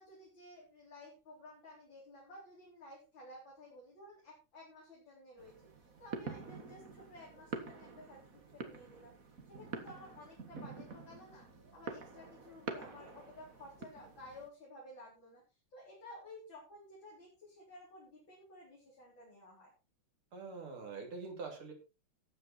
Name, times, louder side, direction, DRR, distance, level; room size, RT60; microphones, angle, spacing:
voice 1, 0.0-19.7, left 1 dB, 65° left, -4 dB, 4.8 m, -54 dB
sound 1, 5.4-14.5, right 4 dB, 45° right, 2.0 m, -47 dB
voice 2, 20.3-21.7, right 4 dB, 85° right, 2 dB, 3.9 m, -44 dB
13.5 x 9.2 x 4.2 m, 0.29 s
omnidirectional pair, 2.3 m